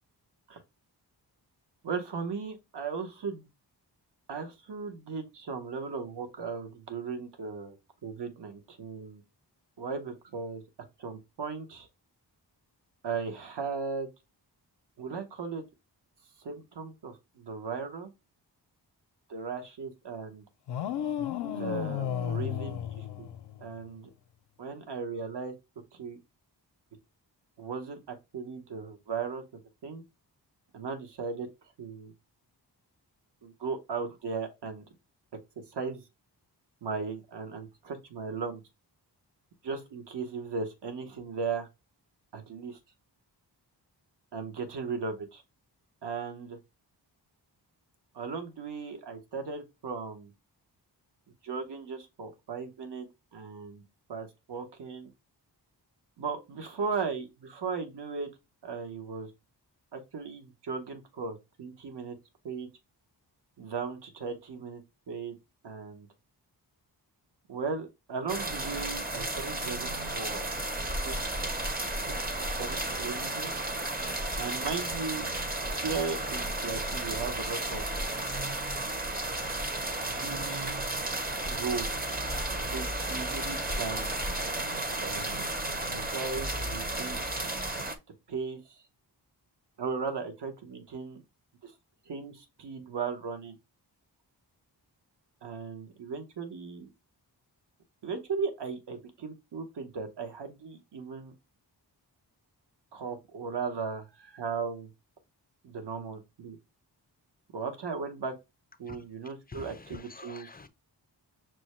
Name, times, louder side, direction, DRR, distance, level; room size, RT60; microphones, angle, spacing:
voice 1, 1.8-3.5 4.3-7.8 8.0-9.2 9.8-10.6 11.0-11.9 13.0-14.1 15.0-15.6 16.4-18.1 19.3-20.4 21.4-23.3 23.6-24.1 24.6-25.5 25.9-26.2 27.6-29.4 29.8-30.0 30.7-31.5 31.8-32.1 33.4-34.8 35.7-36.0 36.8-38.6 39.6-41.7 42.3-42.8 44.3-45.4 46.0-46.6 48.1-50.3 51.4-53.8 54.1-55.1 56.2-58.3 58.6-59.3 59.9-62.2 62.4-62.7 63.6-64.8 65.1-65.3 65.6-66.1 67.5-70.5 71.0-71.2 71.9-73.5 74.4-75.2 75.7-77.8 80.0-80.8 81.4-81.9 82.7-84.1 85.0-85.6 85.9-87.2 88.3-88.8 89.8-91.2 91.6-91.7 92.1-93.6 95.4-96.9 98.0-101.3 102.9-104.9 105.6-106.6 107.5-108.3 108.8-110.5, right 5 dB, 70° right, 1.1 m, -37 dB
sound 1, 20.7-23.8, left 10 dB, 70° left, 0.5 m, -33 dB
sound 2, 68.3-88.0, right 1 dB, 20° right, 0.7 m, -33 dB
voice 2, 109.5-110.7, left 4 dB, 20° left, 0.5 m, -46 dB
6.1 x 2.2 x 3.0 m
wide cardioid pair, 95°, 43 cm